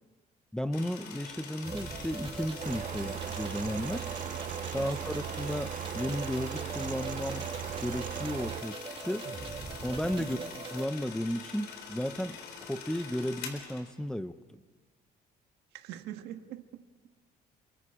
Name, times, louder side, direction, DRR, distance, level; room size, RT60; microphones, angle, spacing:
voice 1, 0.5-4.1 4.7-7.5 7.8-9.3 9.8-10.4 10.7-12.4 12.7-14.3, equal, 5° left, 11 dB, 0.8 m, -34 dB
sound 1, 0.7-13.9, left 6 dB, 85° left, 3.8 m, -45 dB
sound 2, 1.6-10.9, right 4 dB, 35° right, 2.7 m, -42 dB
sound 3, 2.6-8.6, right 11 dB, 50° right, 0.6 m, -38 dB
voice 2, 4.8-5.1 9.2-9.3 10.2-10.5 15.7-16.8, right 12 dB, 85° right, 7 dB, 1.6 m, -44 dB
29.5 x 24.0 x 5.0 m, 1.4 s
cardioid pair, 110°, 17 cm